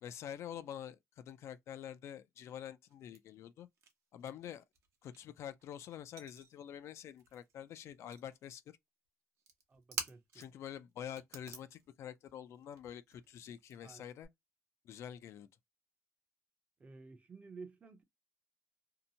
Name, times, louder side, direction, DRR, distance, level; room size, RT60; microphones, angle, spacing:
voice 1, 0.0-3.7 4.1-4.6 5.0-8.8 10.3-14.3 14.8-15.5, left 10 dB, 65° left, 0.4 m, -47 dB
sound 1, 2.9-3.9 4.2-7.7 7.9-8.5 9.4-10.7 11.0-14.3, right 5 dB, 70° right, 0.8 m, -48 dB
voice 2, 9.7-10.4 13.8-14.0 16.8-18.0, right 4 dB, 25° right, 0.5 m, -53 dB
2.7 x 2.1 x 2.6 m
cardioid pair, 155°, 5 cm